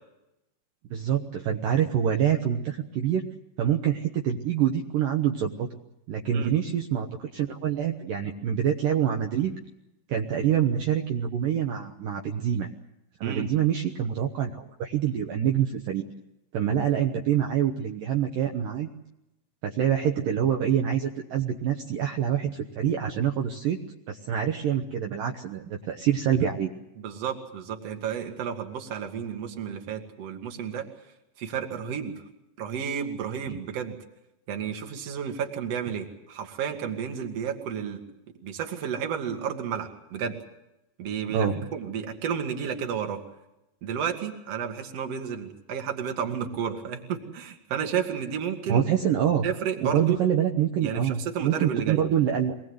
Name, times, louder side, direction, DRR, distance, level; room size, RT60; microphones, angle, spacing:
voice 1, 0.9-3.2 3.6-5.7 6.1-9.6 10.1-12.7 13.2-16.1 16.5-18.9 19.6-23.8 24.1-26.7 33.5-33.6 41.3-41.7 48.7-49.5 49.8-52.7, right 9 dB, 75° right, 3 dB, 2.0 m, -26 dB
voice 2, 27.0-30.9 31.4-32.1 32.6-33.9 34.5-38.0 38.4-40.4 41.0-43.2 43.8-48.9 49.4-50.2 50.8-52.0, right 7 dB, 50° right, 4 dB, 2.1 m, -32 dB
24.5 x 19.5 x 7.9 m, 0.90 s
omnidirectional pair, 5.6 m